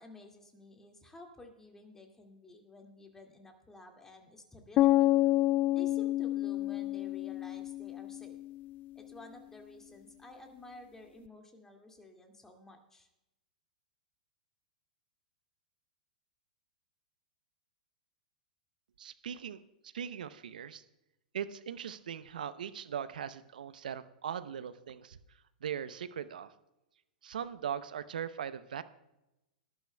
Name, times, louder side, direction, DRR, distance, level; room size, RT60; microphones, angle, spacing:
voice 1, 0.0-5.1 5.7-8.4 9.0-13.1, left 2 dB, 10° left, 3 dB, 2.2 m, -52 dB
sound 1, 4.8-8.7, left 15 dB, 30° left, 0.3 m, -28 dB
voice 2, 19.0-20.8 21.3-25.2 25.6-26.5 27.2-28.8, right 8 dB, 75° right, 13 dB, 0.7 m, -40 dB
20.5 x 11.5 x 2.3 m, 0.92 s
hypercardioid pair, 110°, 5 cm